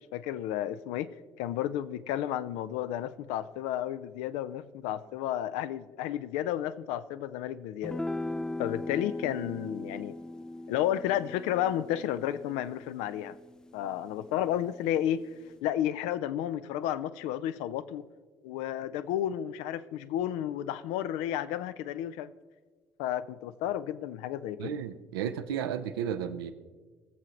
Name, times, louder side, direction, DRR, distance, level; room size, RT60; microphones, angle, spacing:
voice 1, 0.1-1.1 1.4-8.0 8.6-10.2 10.7-13.4 13.7-15.3 15.6-18.0 18.4-22.3 23.0-24.8, left 11 dB, 65° left, 14 dB, 0.5 m, -32 dB
sound 1, 7.8-14.4, left 1 dB, 5° left, 0.4 m, -39 dB
voice 2, 24.6-26.5, right 8 dB, 75° right, 9 dB, 0.6 m, -33 dB
19.5 x 7.6 x 3.8 m, 1.5 s
figure-of-eight pair, 50°, 12 cm